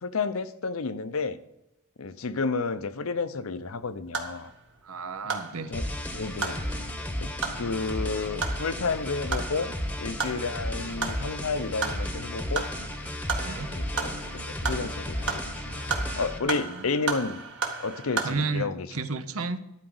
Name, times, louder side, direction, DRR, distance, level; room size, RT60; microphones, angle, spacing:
voice 1, 0.0-1.4 2.0-4.5 5.7-5.8 6.1-6.6 7.2-7.3 7.6-12.7 13.7-17.4 17.8-19.0, left 4 dB, 75° left, 13 dB, 0.7 m, -31 dB
sound 1, 3.6-18.3, right 4 dB, 60° right, 1.8 m, -36 dB
voice 2, 4.8-5.7 13.4-13.7 16.4-16.9 18.2-19.6, right 4 dB, 75° right, 12 dB, 0.8 m, -33 dB
sound 2, 5.7-16.4, left 1 dB, 5° left, 1.0 m, -33 dB
11.5 x 4.9 x 7.9 m, 0.86 s
head